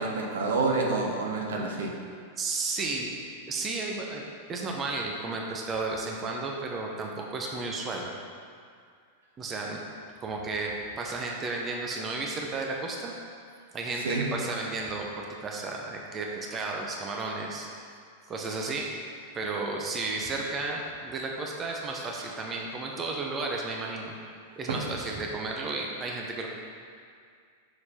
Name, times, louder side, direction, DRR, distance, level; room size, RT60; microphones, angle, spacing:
voice 1, 0.0-1.9 14.0-14.3 24.7-24.8, right 3 dB, 70° right, 0 dB, 0.9 m, -28 dB
voice 2, 2.4-3.2 3.5-8.1 9.4-9.8 10.2-13.1 13.7-17.7 18.3-18.9 19.3-24.1 24.6-26.5, right 3 dB, 25° right, 0 dB, 0.8 m, -33 dB
6.8 x 4.3 x 4.3 m, 2.2 s
figure-of-eight pair, 95°, 0 cm